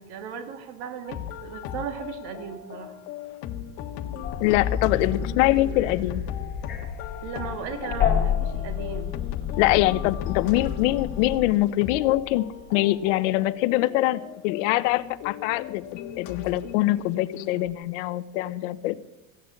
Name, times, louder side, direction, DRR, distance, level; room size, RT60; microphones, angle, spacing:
voice 1, 0.0-3.0 4.1-4.3 7.2-9.1, right 7 dB, 70° right, 6 dB, 2.7 m, -36 dB
sound 1, 1.1-17.7, left 10 dB, 50° left, 1.4 m, -38 dB
sound 2, 4.2-11.5, left 8 dB, 30° left, 2.4 m, -30 dB
voice 2, 4.4-6.2 9.6-15.8 16.2-19.0, left 16 dB, 85° left, 14 dB, 0.9 m, -23 dB
16.0 x 9.7 x 8.5 m, 0.97 s
cardioid pair, 160°, 36 cm